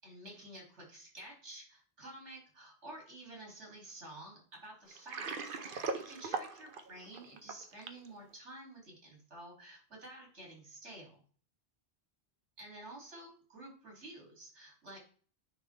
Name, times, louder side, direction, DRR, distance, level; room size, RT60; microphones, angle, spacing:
voice 1, 0.0-11.2 12.6-15.0, right 1 dB, 85° right, -1 dB, 2.8 m, -51 dB
Water, 4.9-8.1, right 4 dB, 55° right, 0.8 m, -39 dB
9.8 x 3.5 x 3.2 m, 0.43 s
omnidirectional pair, 1.2 m